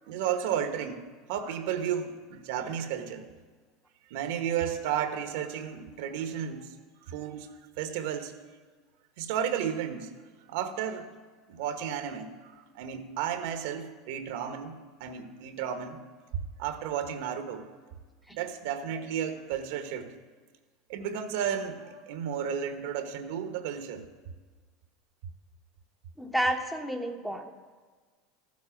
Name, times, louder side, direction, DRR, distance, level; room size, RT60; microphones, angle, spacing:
voice 1, 0.1-3.3 4.1-6.7 7.1-8.3 9.2-10.1 10.5-11.1 11.5-16.0 16.6-17.7 18.3-20.1 20.9-24.0, right 8 dB, 75° right, 8 dB, 1.1 m, -33 dB
voice 2, 26.2-27.5, right 1 dB, 5° left, 4 dB, 1.1 m, -30 dB
14.0 x 7.5 x 5.9 m, 1.5 s
supercardioid pair, 110°, 0 cm